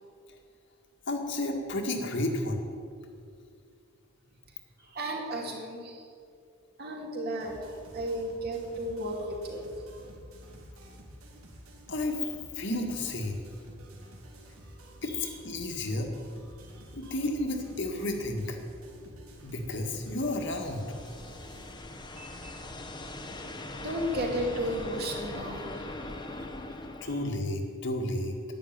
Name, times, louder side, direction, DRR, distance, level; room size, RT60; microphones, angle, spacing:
voice 1, 1.1-2.6 11.9-12.2 12.6-13.4 15.0-16.1 16.9-18.6 19.4-20.8 27.0-28.4, left 1 dB, 55° left, 3 dB, 1.9 m, -32 dB
voice 2, 4.8-6.1 6.8-7.6 7.9-9.7 15.1-15.4 16.5-17.1 22.2-22.6 23.1-23.3 23.8-26.5 27.0-27.2, right 1 dB, 45° right, 0 dB, 2.8 m, -35 dB
sound 1, 7.4-21.7, equal, 85° right, 2.4 m, -50 dB
sound 2, 19.1-27.3, left 2 dB, 20° left, 1.1 m, -42 dB
11.5 x 10.0 x 9.3 m, 2.4 s
head